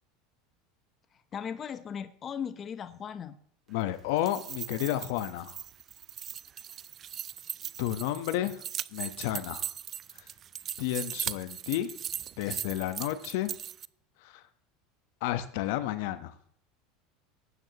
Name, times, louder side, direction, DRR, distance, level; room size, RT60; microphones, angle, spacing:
voice 1, 1.3-3.4, left 7 dB, 35° left, 11 dB, 0.8 m, -37 dB
voice 2, 3.7-5.6 7.8-8.6 8.9-9.6 10.8-11.9 12.4-13.5 14.2-14.4 15.2-16.3, left 13 dB, 70° left, 12 dB, 1.0 m, -31 dB
sound 1, 4.1-13.9, right 9 dB, 35° right, 0.4 m, -39 dB
18.5 x 9.5 x 3.0 m, 0.63 s
supercardioid pair, 110°, 0 cm